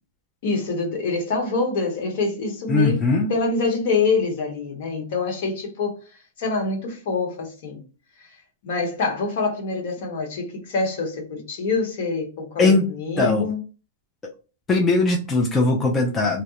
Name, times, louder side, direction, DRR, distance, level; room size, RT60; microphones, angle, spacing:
voice 1, 0.4-3.0 3.3-6.0 6.4-7.8 8.2-8.3 8.6-13.6, left 4 dB, 60° left, 1.0 m, -25 dB
voice 2, 2.7-3.3 12.6-12.9 13.2-13.5 14.7-16.4, left 3 dB, 20° left, 0.5 m, -19 dB
2.2 x 2.0 x 2.9 m
hypercardioid pair, 130°, 0 cm